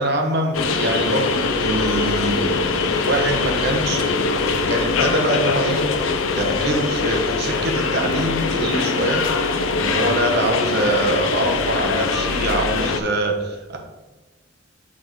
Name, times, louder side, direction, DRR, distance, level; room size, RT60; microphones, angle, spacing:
voice 1, 0.0-4.1 4.4-9.5 9.7-13.8, right 1 dB, 55° right, 2 dB, 1.0 m, -24 dB
sound 1, 0.5-13.0, left 4 dB, 85° left, 0.5 m, -22 dB
8.7 x 3.6 x 3.1 m, 1.2 s
head